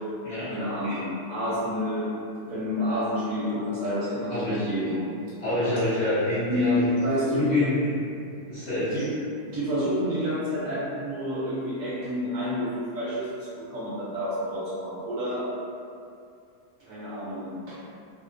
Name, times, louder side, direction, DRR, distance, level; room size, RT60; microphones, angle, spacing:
voice 1, 0.5-2.1 2.4-5.2 6.5-7.5 7.7-7.9 8.9-9.1 9.5-15.4 16.8-17.8, equal, 65° right, -10 dB, 1.1 m, -29 dB
voice 2, 4.3-4.7 5.4-6.9 7.3-7.8 8.5-9.0, left 2 dB, 45° left, -15 dB, 1.3 m, -26 dB
2.8 x 2.1 x 2.5 m, 2.4 s
omnidirectional pair, 1.6 m